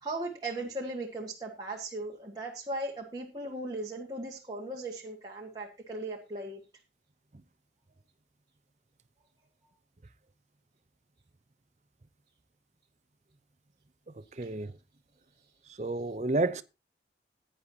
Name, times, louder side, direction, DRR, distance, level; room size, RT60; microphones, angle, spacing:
voice 1, 0.0-6.6, right 2 dB, 25° right, 1.6 m, -37 dB
voice 2, 14.4-14.7 15.8-16.6, right 2 dB, 40° right, 0.6 m, -30 dB
15.5 x 9.9 x 2.8 m
head